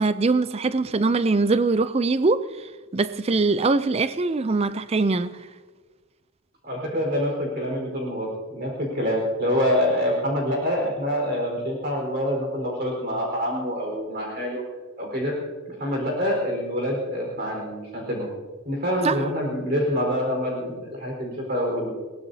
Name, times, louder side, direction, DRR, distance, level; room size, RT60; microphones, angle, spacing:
voice 1, 0.0-2.5 2.9-5.3 19.0-19.2, right 3 dB, 30° right, 0.4 m, -22 dB
voice 2, 6.6-14.6 15.0-15.4 15.7-18.3 18.6-21.9, equal, 45° right, 4.6 m, -26 dB
22.5 x 19.0 x 2.8 m
head